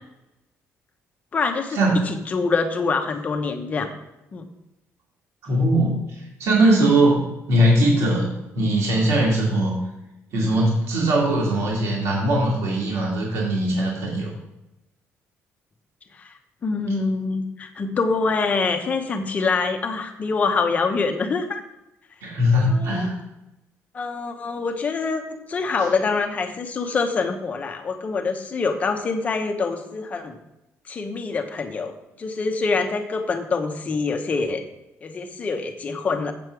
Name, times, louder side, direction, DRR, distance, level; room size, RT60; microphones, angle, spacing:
voice 1, 1.3-1.8 2.1-3.9 4.3-4.4 16.1-16.3 16.6-21.6 22.7-23.1 23.9-30.4 30.9-34.6 35.0-36.3, left 4 dB, 30° left, 6 dB, 0.9 m, -25 dB
voice 2, 5.4-9.8 10.3-14.3 16.7-16.8 22.2-23.1, right 1 dB, 65° right, -3 dB, 2.5 m, -20 dB
7.7 x 7.4 x 4.7 m, 0.93 s
cardioid pair, 170°, 5 cm